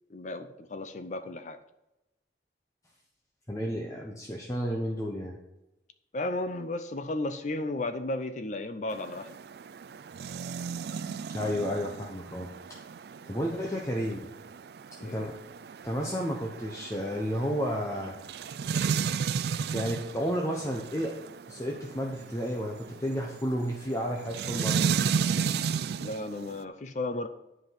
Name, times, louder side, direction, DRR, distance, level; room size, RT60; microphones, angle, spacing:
voice 1, 0.1-1.6 6.1-9.3 15.0-15.3 26.0-27.3, left 2 dB, 45° left, 10 dB, 0.6 m, -34 dB
voice 2, 3.5-5.4 11.3-12.5 13.3-14.3 15.0-15.4 15.8-18.2 19.6-21.1 21.5-24.8, equal, 20° left, -1 dB, 1.0 m, -32 dB
sound 1, 8.9-26.6, right 6 dB, 65° right, 0.3 m, -34 dB
10.5 x 5.1 x 5.8 m, 0.94 s
head